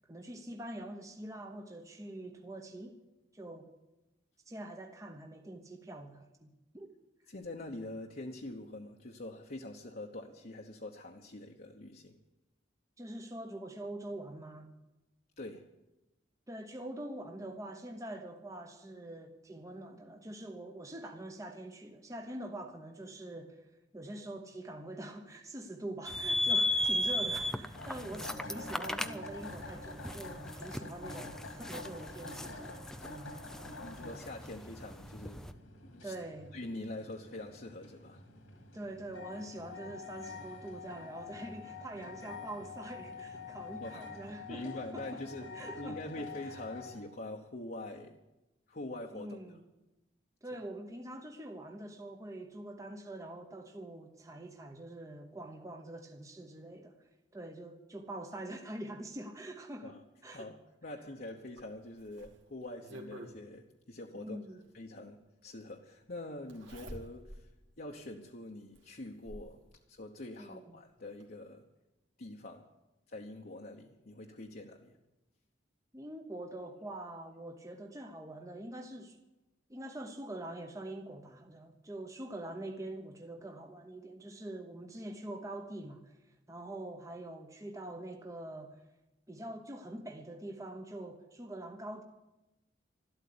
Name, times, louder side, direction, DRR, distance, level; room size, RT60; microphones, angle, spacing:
voice 1, 0.1-3.0 3.3-3.7 4.5-6.5 6.7-6.9 13.0-14.7 16.5-23.7 23.9-32.8 33.0-33.3 36.0-36.5 38.7-45.2 45.5-46.6 49.1-49.6 50.4-57.0 57.3-60.0 60.2-60.4 64.1-64.6 70.4-70.8 75.9-79.2 79.7-86.2 86.5-88.8 89.3-92.0, right 1 dB, 15° right, 4 dB, 1.0 m, -44 dB
voice 2, 7.3-12.2 15.4-15.7 33.8-35.4 35.8-36.1 36.5-38.2 43.8-44.1 44.5-48.2 48.7-49.6 59.8-60.0 60.3-64.4 64.7-67.5 67.8-69.6 69.9-71.6 72.2-72.7 73.1-74.9, left 1 dB, 45° left, 0 dB, 1.1 m, -44 dB
sound 1, 26.1-35.5, left 1 dB, 5° left, 0.5 m, -36 dB
sound 2, 27.7-47.0, left 4 dB, 90° left, 3.1 m, -47 dB
Zipper (clothing), 61.6-63.3 64.8-64.9 66.5-67.5 67.9-68.0 68.7-69.6 70.8-70.9 71.2-71.3, equal, 65° right, 2.5 m, -48 dB
13.0 x 12.5 x 8.6 m, 0.99 s
head